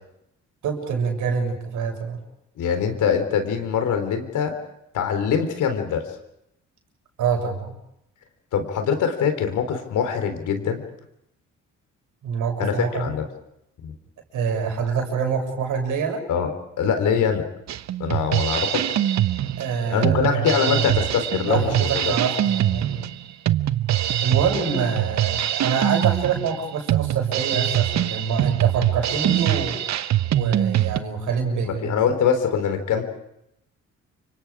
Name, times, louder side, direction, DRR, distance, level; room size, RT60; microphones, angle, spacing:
voice 1, 0.6-2.2 7.2-7.8 12.2-13.1 14.3-16.2 19.6-20.9 21.5-23.0 24.2-29.7 30.3-32.0, right 6 dB, 80° right, 3 dB, 6.8 m, -26 dB
voice 2, 2.6-4.6 4.9-6.0 8.5-10.8 12.6-13.2 13.8-13.9 16.3-17.5 18.0-18.8 19.9-22.1 31.6-33.0, left 7 dB, 80° left, 7 dB, 4.2 m, -23 dB
Drum kit, 17.7-31.0, right 12 dB, 65° right, 1.0 m, -23 dB
29.5 x 25.0 x 5.0 m, 0.81 s
cardioid pair, 90°, 30 cm